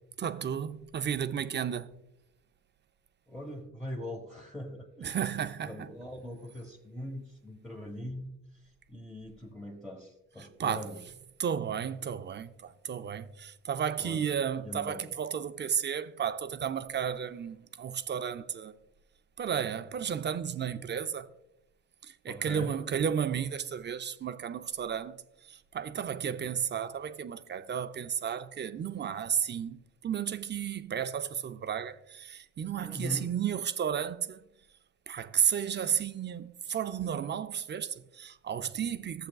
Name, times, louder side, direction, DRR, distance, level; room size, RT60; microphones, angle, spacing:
voice 1, 0.2-1.9 5.0-5.9 10.6-10.9 11.4-18.8 19.4-21.3 22.0-34.4 35.1-39.3, right 8 dB, 35° right, 0.5 m, -33 dB
voice 2, 3.3-5.2 5.7-11.0 14.0-14.2 14.6-15.0 22.3-22.7 32.8-33.3, left 1 dB, 5° left, 1.1 m, -41 dB
14.5 x 7.6 x 2.3 m
cardioid pair, 90°, 30 cm